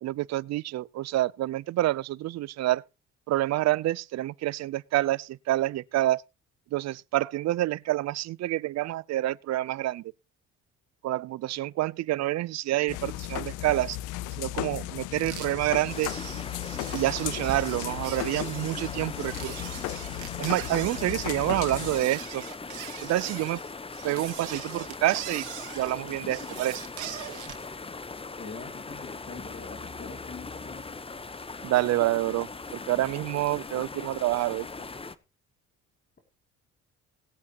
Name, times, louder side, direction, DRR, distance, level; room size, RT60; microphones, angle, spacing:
voice 1, 0.0-2.8 3.3-6.2 6.7-10.1 11.0-14.0 14.4-16.1 16.9-19.6 20.4-22.4 23.0-23.6 24.0-25.5 25.7-26.9 31.6-34.7, right 15 dB, 60° right, 0.5 m, -28 dB
sound 1, 12.9-22.0, left 16 dB, 85° left, 0.6 m, -36 dB
sound 2, 15.1-27.7, right 13 dB, 80° right, 1.9 m, -42 dB
sound 3, 15.9-35.2, left 4 dB, 20° left, 0.9 m, -40 dB
voice 2, 28.4-31.1, left 4 dB, 35° left, 2.7 m, -44 dB
19.5 x 8.4 x 2.9 m
supercardioid pair, 85°, 30 cm